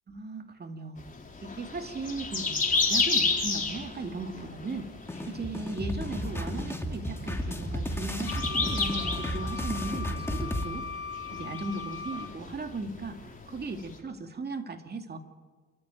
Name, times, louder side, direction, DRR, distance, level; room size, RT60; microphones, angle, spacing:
voice 1, 0.1-1.1 1.4-4.9 5.3-10.9 11.3-13.2 13.5-15.2, right 3 dB, 35° right, 5 dB, 2.4 m, -37 dB
sound 1, 1.0-14.0, left 4 dB, 25° left, 4.2 m, -33 dB
sound 2, 5.1-10.6, equal, 10° left, 2.6 m, -33 dB
Wind instrument woodwind instrument, 8.3-12.3, left 6 dB, 45° left, 4.1 m, -39 dB
28.0 x 13.5 x 9.2 m, 1.4 s
cardioid pair, 90°, 30 cm